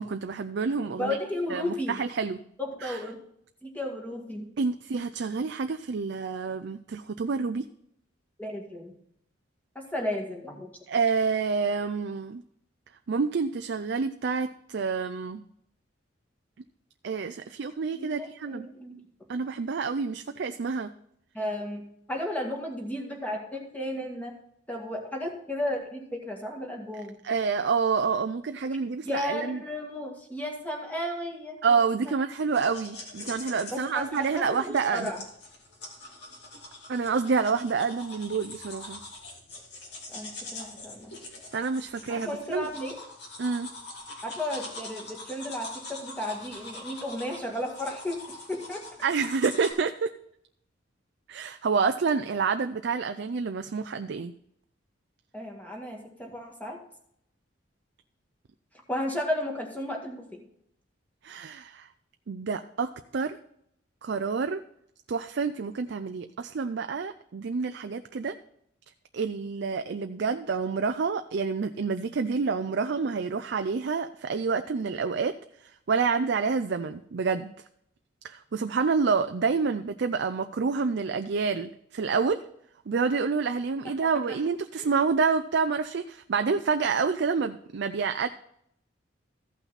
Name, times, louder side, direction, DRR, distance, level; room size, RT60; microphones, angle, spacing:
voice 1, 0.0-1.2 1.5-2.4 2.8-3.0 4.6-7.7 10.9-12.4 13.1-15.4 17.0-18.7 19.3-20.9 27.2-29.6 31.6-35.1 36.9-39.0 41.5-42.7 43.4-43.7 49.0-50.1 51.3-54.3 61.2-61.9 62.3-63.4 64.0-64.6 65.1-68.4 69.1-75.4 75.9-77.5 78.2-82.4 82.9-88.3, right 5 dB, 60° right, 8 dB, 0.4 m, -28 dB
voice 2, 1.0-2.0 2.6-3.2 3.6-4.5 8.4-8.9 9.9-10.7 17.9-19.0 21.3-21.8 22.1-24.3 24.7-27.2 29.0-31.6 32.0-32.1 33.7-35.2 40.1-41.2 42.1-43.0 44.2-48.8 55.3-56.8 58.9-60.4 84.3-84.4 84.8-84.9, left 1 dB, 10° left, 0 dB, 2.0 m, -34 dB
sound 1, 32.5-49.7, left 2 dB, 60° left, 2.5 m, -44 dB
14.5 x 5.8 x 4.1 m, 0.72 s
head